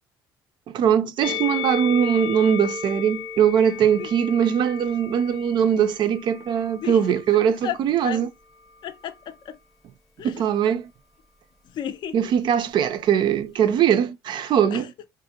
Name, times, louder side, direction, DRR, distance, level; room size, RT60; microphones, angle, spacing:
voice 1, 0.7-8.3 10.2-10.8 12.1-14.9, right 8 dB, 55° right, 0.4 m, -21 dB
Musical instrument, 1.2-7.6 8.5-9.5, left 6 dB, ahead, 0.7 m, -34 dB
voice 2, 7.3-7.8 8.0-8.3 8.8-9.6 10.2-10.3 11.7-12.1 14.7-14.8, left 10 dB, 50° left, 0.4 m, -32 dB
2.5 x 2.0 x 2.7 m
supercardioid pair, 95°, 10 cm